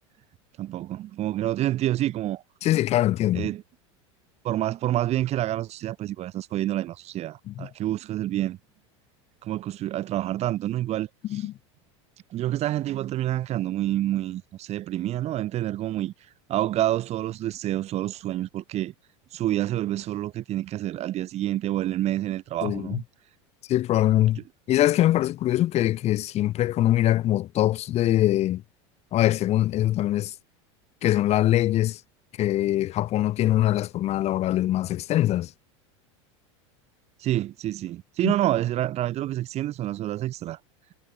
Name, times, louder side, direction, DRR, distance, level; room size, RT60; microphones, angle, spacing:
voice 1, 0.6-2.4 3.3-3.6 4.4-8.6 9.4-11.5 12.3-16.1 16.5-18.9 19.3-23.0 24.4-24.5 37.2-40.6, right 13 dB, 45° right, 5.6 m, -28 dB
voice 2, 2.6-3.5 7.5-7.7 11.3-11.5 22.6-23.0 23.7-24.4 24.7-28.6 29.1-30.3 31.0-32.0 32.4-35.5 38.2-38.3, left 14 dB, 45° left, 3.9 m, -23 dB
supercardioid pair, 115°, 16 cm